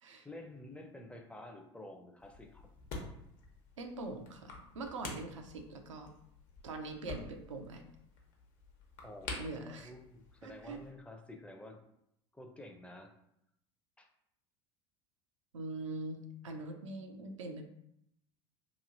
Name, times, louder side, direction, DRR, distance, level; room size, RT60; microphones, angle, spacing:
voice 1, 0.2-2.7 9.0-11.8 12.3-13.1 14.0-14.1, left 1 dB, 10° left, 3 dB, 0.5 m, -50 dB
sound 1, 2.2-10.9, left 3 dB, 55° left, 0.9 m, -49 dB
voice 2, 3.8-6.1 6.6-7.8 9.4-9.9 10.4-10.8 15.5-17.6, right 2 dB, 85° right, 4 dB, 0.5 m, -43 dB
3.0 x 2.7 x 2.6 m, 0.77 s
hypercardioid pair, 80°, 15 cm